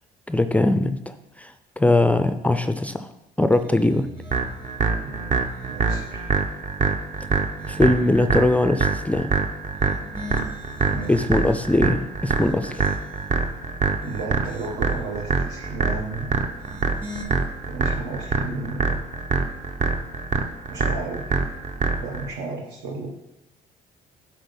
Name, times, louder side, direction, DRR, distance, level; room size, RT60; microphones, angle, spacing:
voice 1, 0.3-3.1 3.4-4.1 7.7-9.3 11.1-12.8, left 2 dB, 10° left, 9 dB, 0.4 m, -21 dB
sound 1, 3.5-4.8 5.4-6.5 7.0-8.1 9.6-11.7 12.2-13.4 13.8-15.0 16.4-17.2, equal, 30° right, 1.7 m, -42 dB
Main-Bassline, 4.3-22.3, right 4 dB, 45° right, 0.8 m, -25 dB
voice 2, 5.0-6.2 10.9-11.2 13.5-13.6 14.0-16.3 17.7-19.0 20.7-21.3 22.0-23.1, right 3 dB, 75° right, 0 dB, 1.0 m, -33 dB
8.2 x 4.1 x 5.4 m, 0.87 s
cardioid pair, 110°, 17 cm